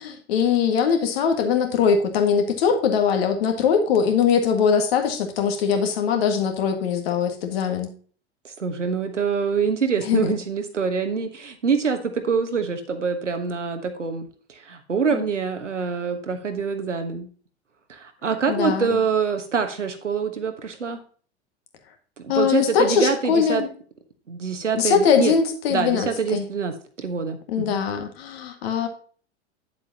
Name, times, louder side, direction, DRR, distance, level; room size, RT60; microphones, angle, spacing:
voice 1, 0.0-7.9 10.1-10.3 15.1-15.2 18.5-19.0 22.3-23.7 24.7-26.4 27.5-28.9, left 6 dB, 60° left, 5 dB, 1.9 m, -21 dB
voice 2, 8.4-17.3 17.9-21.0 22.3-23.6 24.3-25.3 25.7-27.8, right 5 dB, 85° right, 7 dB, 1.3 m, -25 dB
8.9 x 7.5 x 2.9 m, 0.42 s
figure-of-eight pair, 90°, 35 cm